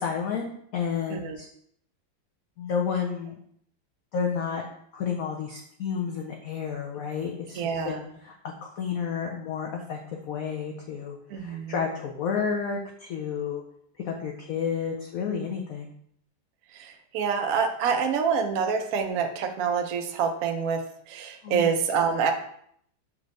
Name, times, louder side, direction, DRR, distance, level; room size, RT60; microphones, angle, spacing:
voice 1, 0.0-1.5 2.6-3.3 4.1-4.6 4.9-8.3 8.6-10.0 10.3-13.6 14.1-15.9 21.4-21.8, left 6 dB, 85° left, 1 dB, 0.7 m, -31 dB
voice 2, 7.5-8.1 11.3-11.8 16.7-22.3, right 6 dB, 80° right, 5 dB, 0.7 m, -27 dB
6.1 x 2.5 x 3.1 m, 0.66 s
omnidirectional pair, 2.1 m